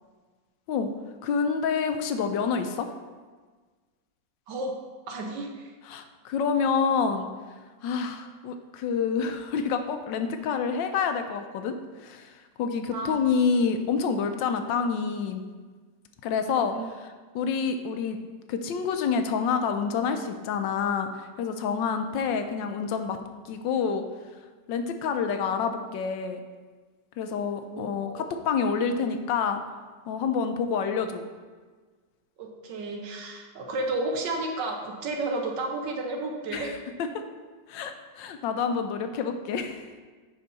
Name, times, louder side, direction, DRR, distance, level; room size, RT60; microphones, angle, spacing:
voice 1, 1.2-2.9 5.8-7.3 7.8-15.4 16.2-16.8 17.3-18.2 18.5-23.2 23.4-24.0 24.7-26.4 27.2-29.6 30.1-31.2 36.5-36.8 37.1-37.2 37.7-40.0, left 6 dB, 85° left, 7 dB, 1.4 m, -28 dB
voice 2, 5.1-5.7 12.9-13.2 16.4-16.9 22.0-22.1 27.7-28.3 32.4-36.7, right 2 dB, 75° right, 2 dB, 1.6 m, -32 dB
10.5 x 4.6 x 4.0 m, 1.4 s
omnidirectional pair, 2.0 m